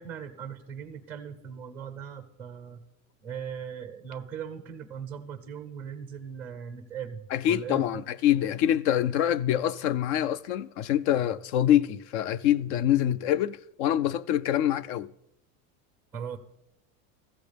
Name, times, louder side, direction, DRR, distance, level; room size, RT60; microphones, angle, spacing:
voice 1, 0.0-2.8 3.2-8.0 16.1-16.4, right 7 dB, 5° right, 0.5 m, -39 dB
voice 2, 7.3-15.1, left 11 dB, 50° left, 0.5 m, -25 dB
15.0 x 14.0 x 3.4 m
supercardioid pair, 170°, 42 cm